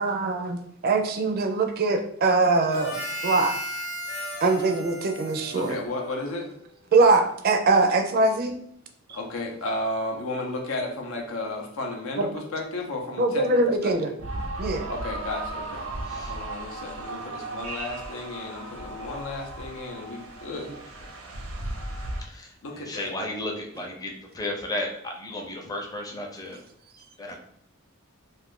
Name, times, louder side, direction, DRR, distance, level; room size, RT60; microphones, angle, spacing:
voice 1, 0.0-3.6 4.4-5.8 6.9-8.5 9.1-9.2 12.2-12.3 13.2-14.1 14.6-14.9, right 3 dB, 50° right, 5 dB, 0.4 m, -22 dB
Harmonica, 2.7-6.5, equal, 50° left, 0.9 m, -35 dB
voice 2, 5.5-6.5 9.1-14.1 14.9-20.7 22.6-23.1, left 2 dB, 90° left, 1 dB, 0.6 m, -33 dB
sound 1, 14.2-22.2, right 2 dB, 90° right, 0.6 m, -35 dB
voice 3, 16.1-16.4 22.3-26.6 27.2-27.4, left 1 dB, 20° left, 1 dB, 0.5 m, -34 dB
2.5 x 2.4 x 3.6 m, 0.69 s
head